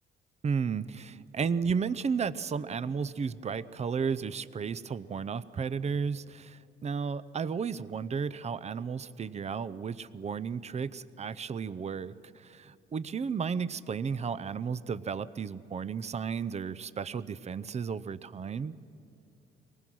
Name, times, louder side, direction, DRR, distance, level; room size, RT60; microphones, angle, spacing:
voice 1, 0.4-18.7, right 6 dB, 35° right, 16 dB, 0.6 m, -33 dB
24.0 x 19.5 x 6.2 m, 2.8 s
cardioid pair, 90°, 20 cm